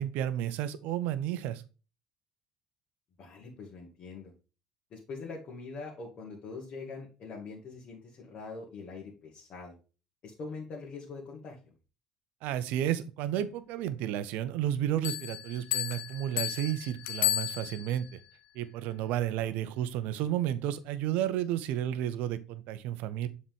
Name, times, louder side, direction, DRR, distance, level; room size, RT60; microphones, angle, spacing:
voice 1, 0.0-1.6 12.4-18.1 18.5-23.3, right 11 dB, 70° right, 14 dB, 0.7 m, -32 dB
voice 2, 3.2-4.3 4.9-9.8 10.2-11.6 19.4-19.5, left 4 dB, 50° left, -3 dB, 2.0 m, -43 dB
Bell, 15.0-18.1, left 13 dB, 70° left, 0.7 m, -33 dB
7.3 x 4.2 x 3.5 m, 0.32 s
hypercardioid pair, 60°, 3 cm